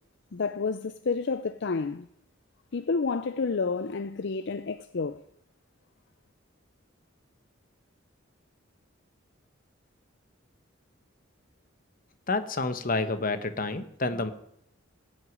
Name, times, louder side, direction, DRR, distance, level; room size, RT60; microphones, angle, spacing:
voice 1, 0.3-2.1 2.7-5.2, left 4 dB, 60° left, 0.5 m, -30 dB
voice 2, 12.3-14.3, left 3 dB, 45° left, 1.2 m, -29 dB
18.0 x 6.4 x 9.3 m
head